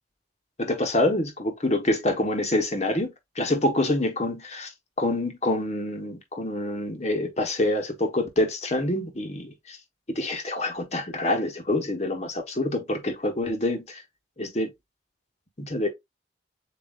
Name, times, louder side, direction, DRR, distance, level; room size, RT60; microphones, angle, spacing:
voice 1, 0.6-4.7 5.0-9.8 10.1-14.0 14.4-14.7 15.6-15.9, left 1 dB, 35° left, 1.2 m, -26 dB
7.3 x 2.7 x 2.5 m
head